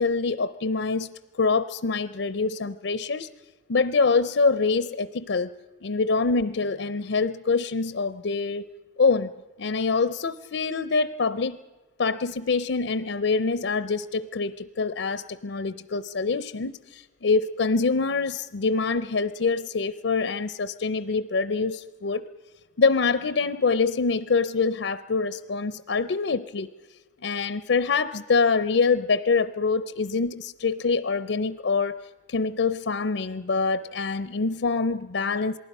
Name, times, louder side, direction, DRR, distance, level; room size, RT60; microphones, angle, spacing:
voice 1, 0.0-3.3 3.7-5.5 5.8-8.7 9.0-9.3 9.6-11.6 12.0-22.3 22.8-26.7 27.2-32.0 32.3-35.6, left 4 dB, 75° left, 15 dB, 0.6 m, -25 dB
27.5 x 19.5 x 5.4 m, 1.2 s
head